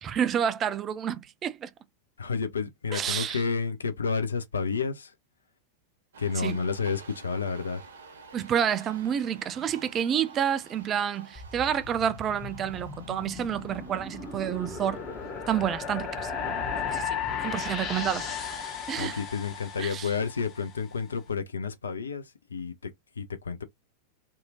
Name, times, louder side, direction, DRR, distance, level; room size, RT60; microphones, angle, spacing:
voice 1, 0.0-1.7 2.9-3.4 6.4-6.6 8.3-15.0 15.5-16.3 16.9-17.2 17.4-18.3 18.9-19.2 19.8-20.1, right 9 dB, 30° right, 0.4 m, -29 dB
voice 2, 2.2-5.1 6.2-7.8 19.0-22.9 23.2-23.6, left 5 dB, 70° left, 0.4 m, -30 dB
sound 1, 6.1-20.0, right 4 dB, 65° right, 0.7 m, -52 dB
sound 2, 11.4-20.7, left 6 dB, 30° left, 0.8 m, -35 dB
2.7 x 2.2 x 2.7 m
figure-of-eight pair, 90°, 0 cm